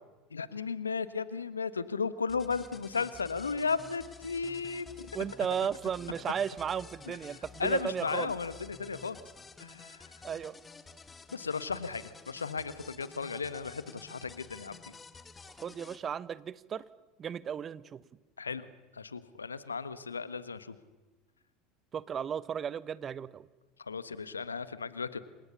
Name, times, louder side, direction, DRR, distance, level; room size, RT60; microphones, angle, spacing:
voice 1, 0.3-5.1 7.6-9.2 9.6-10.0 11.3-14.9 18.4-18.6 19.0-20.7 23.9-25.2, left 5 dB, 90° left, 15 dB, 1.4 m, -35 dB
sound 1, 2.3-16.0, left 4 dB, 20° left, 1.9 m, -51 dB
voice 2, 5.1-8.3 10.2-10.5 15.6-16.8 17.2-18.0 21.9-23.5, right 8 dB, 35° right, 18 dB, 1.1 m, -35 dB
29.0 x 26.5 x 7.0 m, 1.2 s
figure-of-eight pair, 75°, 0 cm